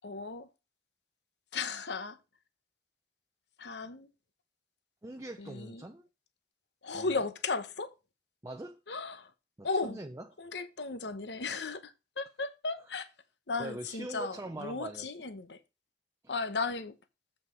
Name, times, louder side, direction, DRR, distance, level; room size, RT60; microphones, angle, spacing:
voice 1, 0.0-0.5 1.5-2.2 3.6-4.1 5.4-5.8 6.8-7.9 8.9-9.3 9.6-10.0 10.4-13.1 13.5-15.6 16.3-16.9, left 4 dB, 70° left, 1.0 m, -35 dB
voice 2, 5.0-6.1 6.9-7.2 8.4-8.8 9.6-10.3 13.6-15.1 16.2-16.4, right 1 dB, 15° right, 0.6 m, -42 dB
7.9 x 5.9 x 4.5 m
head